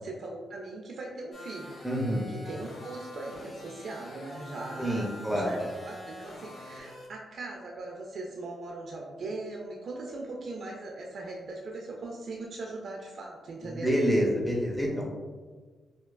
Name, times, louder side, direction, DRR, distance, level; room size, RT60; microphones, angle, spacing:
voice 1, 0.0-1.8 2.3-13.9, right 2 dB, 65° right, -1 dB, 0.4 m, -40 dB
sound 1, 1.3-7.1, left 1 dB, 50° left, 1.0 m, -46 dB
voice 2, 1.8-2.3 4.8-5.5 13.6-15.2, equal, 5° left, -2 dB, 0.6 m, -27 dB
4.4 x 2.3 x 2.3 m, 1.4 s
cardioid pair, 80°, 0 cm